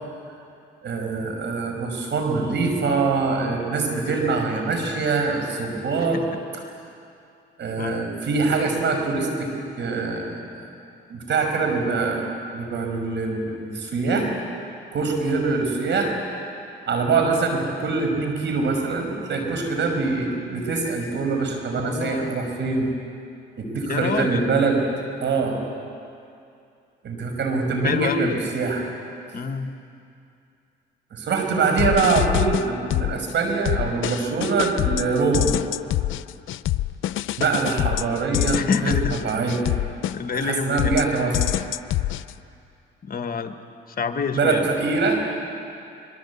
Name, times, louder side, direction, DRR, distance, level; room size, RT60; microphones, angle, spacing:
voice 1, 0.8-6.2 7.6-10.5 11.1-14.3 14.9-16.2 16.9-22.9 23.6-24.8 25.2-25.6 27.0-28.8 31.1-35.5 37.4-39.0 39.2-39.6 40.4-41.4 44.3-45.2, right 4 dB, 65° right, 3 dB, 5.8 m, -24 dB
voice 2, 7.8-8.1 21.8-22.4 23.9-24.4 27.8-28.4 29.3-29.7 38.5-39.1 40.1-41.0 43.0-43.5 43.9-44.7, left 5 dB, 45° left, 8 dB, 1.5 m, -27 dB
sound 1, 31.8-33.3 33.7-40.5 40.8-42.3, left 15 dB, 80° left, 0.6 m, -25 dB
26.0 x 22.0 x 8.5 m, 2.5 s
cardioid pair, 90°, 20 cm